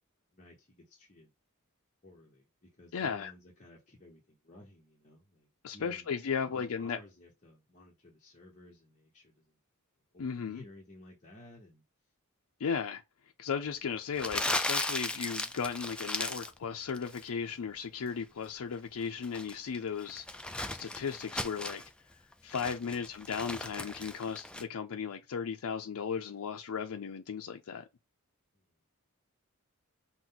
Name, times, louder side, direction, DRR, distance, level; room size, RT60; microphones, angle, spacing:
voice 1, 0.3-1.3 2.0-6.1 6.5-9.6 10.1-11.8, left 1 dB, 35° left, 1.0 m, -55 dB
voice 2, 2.9-3.3 5.6-7.0 10.2-10.6 12.6-13.0 13.4-20.2 20.7-21.8 22.4-27.9, left 6 dB, 75° left, 0.5 m, -36 dB
Crumpling crinkling, 14.2-16.6 16.9-17.3 19.0-21.9 22.3-24.6, left 2 dB, 5° left, 0.3 m, -36 dB
6.0 x 2.2 x 3.9 m
head